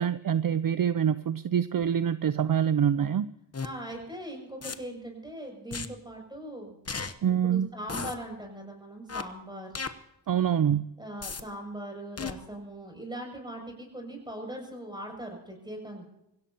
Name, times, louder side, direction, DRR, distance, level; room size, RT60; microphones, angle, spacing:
voice 1, 0.0-3.3 7.2-7.7 10.3-10.9, right 8 dB, 55° right, 14 dB, 0.5 m, -25 dB
sound 1, 3.5-3.7 4.6-4.7 5.7-5.9 6.9-7.1 7.9-8.1 9.1-9.2 9.7-9.9 11.2-11.4 12.2-12.3, left 5 dB, 35° left, 1.0 m, -34 dB
voice 2, 3.6-6.8 7.4-9.8 11.0-16.0, right 1 dB, 10° right, 1 dB, 6.8 m, -40 dB
25.0 x 16.5 x 2.9 m, 0.84 s
wide cardioid pair, 70°, 42 cm